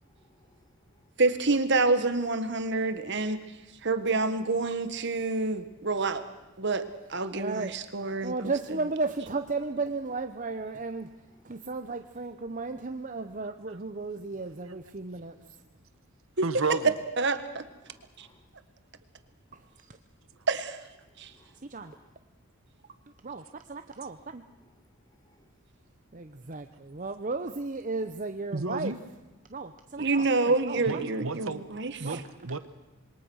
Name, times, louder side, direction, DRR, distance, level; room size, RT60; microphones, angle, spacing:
voice 1, 0.2-0.7 17.8-18.4 21.3-22.1 25.1-25.5, left 1 dB, 20° left, 5 dB, 2.3 m, -64 dB
voice 2, 1.2-3.4 3.8-6.2 6.6-8.3 16.4-16.5 16.8-17.4 18.2-18.3 20.5-20.8 21.2-21.3 30.0-32.2, right 3 dB, 55° right, 10 dB, 1.5 m, -27 dB
voice 3, 7.3-7.8 8.2-11.1 11.4-15.5 19.5-20.0 21.7-22.0 23.2-24.4 26.1-29.0 29.5-30.8 32.0-32.2, right 3 dB, 35° right, 8 dB, 0.8 m, -34 dB
voice 4, 16.4-16.8 28.5-29.0 30.9-31.6 32.0-32.6, right 4 dB, 70° right, 12 dB, 1.2 m, -31 dB
26.5 x 22.5 x 6.4 m, 1.1 s
head